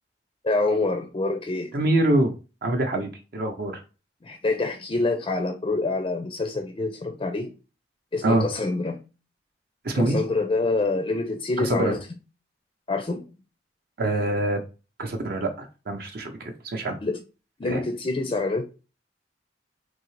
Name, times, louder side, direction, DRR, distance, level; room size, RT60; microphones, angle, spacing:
voice 1, 0.4-1.7 4.2-7.5 8.1-9.0 9.9-12.0 12.9-13.3 17.0-17.2 17.6-18.7, left 3 dB, 30° left, 0.4 m, -26 dB
voice 2, 1.7-2.3 2.6-3.8 8.2-8.5 9.8-10.2 11.6-11.9 14.0-14.6 15.0-17.0 17.6-17.8, right 1 dB, 55° right, 0.6 m, -25 dB
3.8 x 2.7 x 3.1 m
head